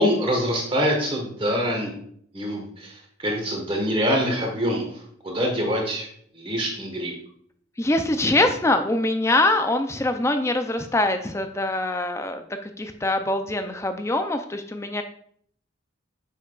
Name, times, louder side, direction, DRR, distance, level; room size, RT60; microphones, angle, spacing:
voice 1, 0.0-1.9 2.3-6.1 6.3-7.1, equal, 25° right, 1 dB, 1.4 m, -25 dB
voice 2, 7.8-15.0, left 2 dB, 15° left, 7 dB, 0.4 m, -23 dB
7.2 x 5.7 x 2.4 m, 0.64 s
head